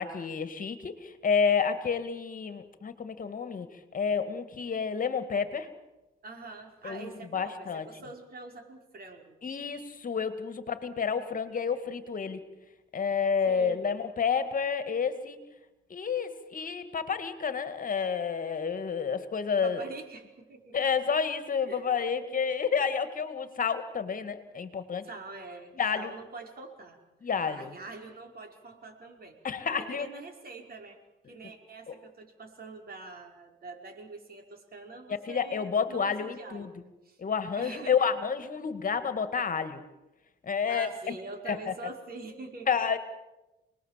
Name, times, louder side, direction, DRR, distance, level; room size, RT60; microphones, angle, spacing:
voice 1, 0.0-5.7 6.8-7.9 9.4-12.4 12.9-15.4 15.9-19.8 20.7-25.1 25.8-26.1 27.2-27.7 29.4-30.1 35.1-36.7 37.2-39.8 40.4-41.1 41.5-41.7 42.7-43.0, left 6 dB, 45° left, 10 dB, 2.1 m, -30 dB
voice 2, 6.2-9.4 13.5-13.8 19.6-20.9 21.7-22.1 25.0-27.0 27.4-29.4 29.7-31.0 31.3-36.7 37.0-37.2 37.6-38.1 40.7-42.9, right 3 dB, 50° right, 3 dB, 5.4 m, -45 dB
29.0 x 20.5 x 7.6 m, 1.0 s
cardioid pair, 90°, 20 cm